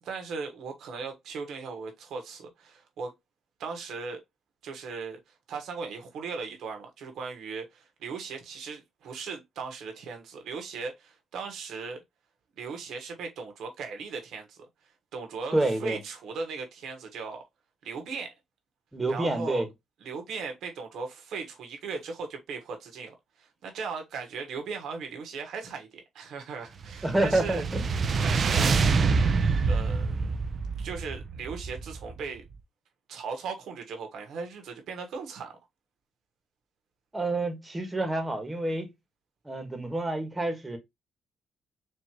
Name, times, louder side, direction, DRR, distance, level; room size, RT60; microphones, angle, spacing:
voice 1, 0.0-3.1 3.6-4.2 4.6-12.0 12.6-14.6 15.1-17.4 17.8-18.3 19.1-19.6 20.0-27.6 28.2-29.1 29.7-30.3 30.8-32.4 33.1-35.6, right 5 dB, 75° right, 1.3 m, -38 dB
voice 2, 15.5-16.0 18.9-19.7 27.0-27.9 37.1-38.9 39.4-40.8, right 2 dB, 15° right, 1.4 m, -28 dB
sound 1, 26.8-32.3, right 4 dB, 45° right, 0.6 m, -26 dB
4.4 x 2.8 x 3.0 m
cardioid pair, 90°, 0 cm